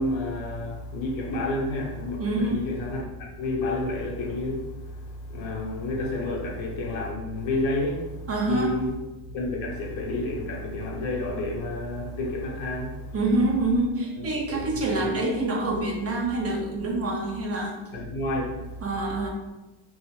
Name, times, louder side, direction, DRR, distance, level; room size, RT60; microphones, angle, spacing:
voice 1, 0.0-8.9 9.3-13.1 14.2-15.1 17.9-18.8, left 2 dB, 75° left, -1 dB, 0.8 m, -30 dB
voice 2, 2.2-2.7 8.3-8.8 13.1-17.8 18.8-19.3, right 2 dB, 35° right, 0 dB, 0.4 m, -26 dB
2.4 x 2.1 x 3.0 m, 1.0 s
cardioid pair, 105°, 48 cm